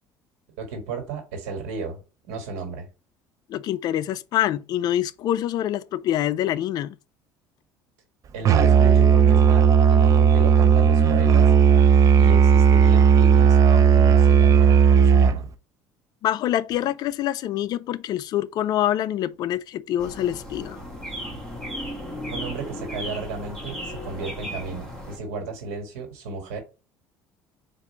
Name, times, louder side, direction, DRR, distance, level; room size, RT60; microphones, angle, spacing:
voice 1, 0.6-2.9 8.3-11.5 12.2-15.5 22.3-26.6, right 4 dB, 85° right, 1.5 m, -34 dB
voice 2, 3.5-7.0 16.2-20.8, left 12 dB, 55° left, 0.4 m, -25 dB
Musical instrument, 8.4-15.5, right 7 dB, 45° right, 0.5 m, -15 dB
sound 1, 20.0-25.2, equal, 5° left, 1.9 m, -35 dB
4.2 x 2.5 x 4.4 m
supercardioid pair, 90°, 8 cm